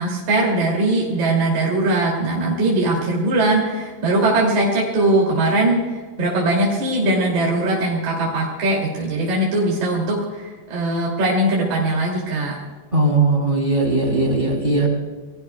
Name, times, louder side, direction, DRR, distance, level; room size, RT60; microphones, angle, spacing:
voice 1, 0.0-12.6, right 2 dB, 40° right, -3 dB, 3.5 m, -20 dB
voice 2, 12.9-14.9, right 2 dB, 15° right, 0 dB, 2.5 m, -18 dB
29.0 x 20.0 x 2.3 m, 1.4 s
omnidirectional pair, 5.7 m